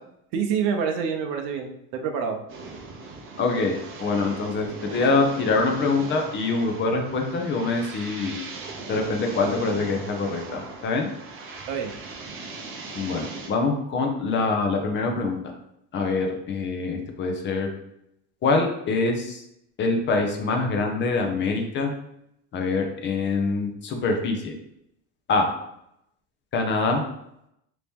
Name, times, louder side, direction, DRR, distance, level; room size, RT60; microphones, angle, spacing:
voice 1, 0.3-2.4 11.7-11.9, right 6 dB, 75° right, 4 dB, 0.7 m, -27 dB
sound 1, 2.5-13.5, right 3 dB, 35° right, 0.6 m, -39 dB
voice 2, 3.4-8.4 8.9-11.1 12.9-15.4 15.9-17.7 18.4-19.4 19.8-21.9 22.5-24.5 25.3-25.5 26.5-27.0, left 3 dB, 30° left, 3 dB, 0.5 m, -24 dB
3.0 x 2.8 x 3.5 m, 0.78 s
cardioid pair, 145°, 38 cm